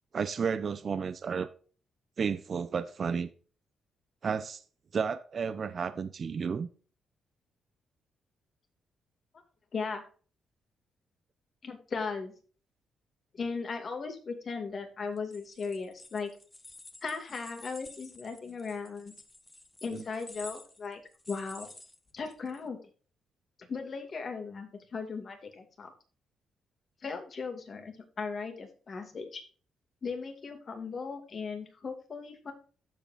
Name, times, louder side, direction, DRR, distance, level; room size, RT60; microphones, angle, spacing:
voice 1, 0.1-1.5 2.2-3.3 4.2-4.6 4.9-6.7 19.9-20.0, right 6 dB, 50° right, 0.7 m, -32 dB
voice 2, 9.7-10.1 11.6-12.3 13.3-16.3 17.0-19.1 19.8-21.0 21.3-21.7 22.1-22.8 23.6-25.9 27.0-29.4 30.0-32.5, left 5 dB, 45° left, 2.3 m, -37 dB
sound 1, 15.2-22.6, left 2 dB, 15° left, 1.0 m, -51 dB
15.0 x 5.3 x 2.6 m
cardioid pair, 95°, 0 cm